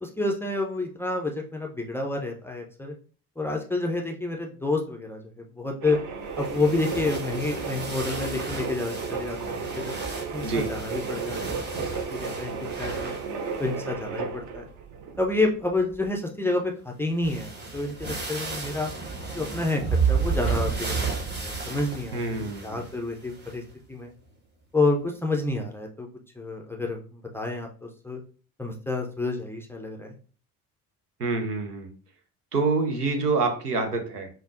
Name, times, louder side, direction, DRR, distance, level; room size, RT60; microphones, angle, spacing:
voice 1, 0.0-2.9 3.4-5.2 5.5-6.0 6.4-9.9 10.3-11.6 11.9-12.5 12.8-13.2 13.6-14.6 15.2-18.9 19.3-23.6 23.9-24.1 24.7-26.1 26.4-28.2 28.6-30.1, left 2 dB, 5° left, 1 dB, 0.3 m, -29 dB
sound 1, 5.8-16.2, right 5 dB, 40° right, 0.6 m, -34 dB
sound 2, 6.4-13.8 14.1-14.2 16.7-16.8 17.0-23.7 24.3-24.4 25.5-25.6, right 2 dB, 25° right, 0.9 m, -38 dB
Fire, 19.8-22.2, right 6 dB, 75° right, 1.4 m, -25 dB
voice 2, 22.1-22.9 31.2-31.9 32.5-34.3, right 3 dB, 90° right, 5 dB, 0.6 m, -27 dB
4.8 x 2.0 x 2.4 m, 0.40 s
figure-of-eight pair, 55°, 45 cm